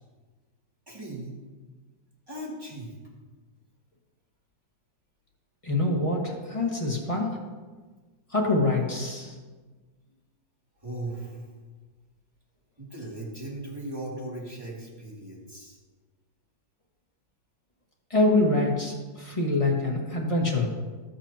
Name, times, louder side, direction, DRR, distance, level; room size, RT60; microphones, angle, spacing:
voice 1, 0.9-1.4 2.3-2.9 10.8-11.5 12.8-15.8, right 1 dB, 10° right, -4 dB, 2.4 m, -38 dB
voice 2, 5.6-7.4 8.3-9.3 18.1-20.7, left 2 dB, 20° left, -1 dB, 1.6 m, -25 dB
19.0 x 7.2 x 2.9 m, 1.3 s
omnidirectional pair, 2.1 m